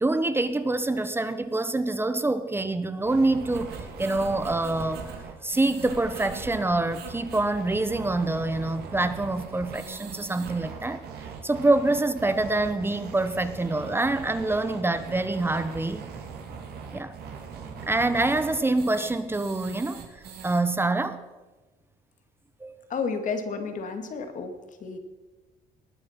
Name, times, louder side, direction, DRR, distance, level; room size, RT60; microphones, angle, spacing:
voice 1, 0.0-5.1 5.4-16.0 16.9-17.1 17.9-20.0 20.4-21.2 22.6-22.9, right 2 dB, 15° right, 11 dB, 0.8 m, -26 dB
sound 1, 3.0-20.6, right 6 dB, 70° right, 2.9 m, -40 dB
voice 2, 22.9-24.5 24.8-25.0, left 5 dB, 50° left, 7 dB, 2.1 m, -31 dB
19.5 x 9.7 x 5.8 m, 1.2 s
cardioid pair, 110°, 17 cm